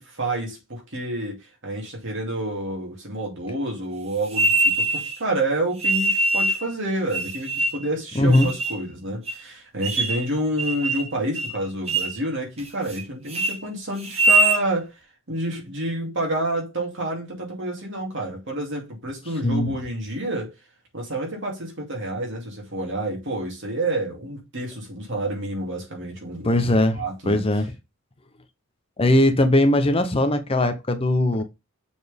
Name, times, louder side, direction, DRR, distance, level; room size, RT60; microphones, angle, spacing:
voice 1, 0.0-14.9 15.3-20.5 20.9-27.4 31.3-31.4, right 1 dB, 55° right, 2.6 m, -29 dB
sound 1, 4.3-5.2 5.8-6.6 7.1-7.9 8.3-8.8 9.3-9.4 9.8-10.3 10.6-11.1 11.3-11.6 11.9-12.2 12.6-13.0 13.3-13.5 14.0-14.6, right 2 dB, 30° right, 1.1 m, -22 dB
voice 2, 8.1-8.5 19.4-19.8 26.4-27.7 29.0-31.4, left 1 dB, 25° left, 0.7 m, -20 dB
6.9 x 4.2 x 3.5 m
head